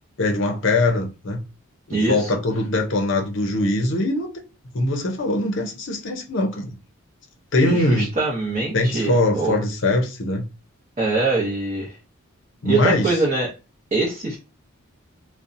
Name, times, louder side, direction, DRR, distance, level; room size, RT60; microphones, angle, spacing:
voice 1, 0.2-1.4 1.9-4.3 4.7-6.8 7.5-8.1 8.7-10.5 12.6-13.1, left 2 dB, 55° left, 0.6 m, -22 dB
voice 2, 1.9-2.3 7.7-9.6 11.0-12.0 12.7-13.5 13.9-14.4, right 3 dB, 30° right, 0.7 m, -23 dB
2.6 x 2.1 x 2.5 m
head